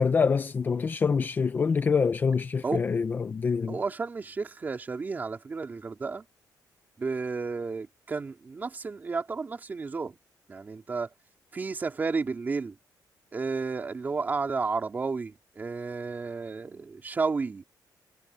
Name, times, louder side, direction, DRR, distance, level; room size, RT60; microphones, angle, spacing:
voice 1, 0.0-3.8, left 5 dB, 25° left, 0.5 m, -25 dB
voice 2, 3.7-6.2 7.0-10.2 10.5-11.1 11.5-12.7 13.3-17.6, right 4 dB, 25° right, 3.3 m, -32 dB
cardioid pair, 180°, 8 cm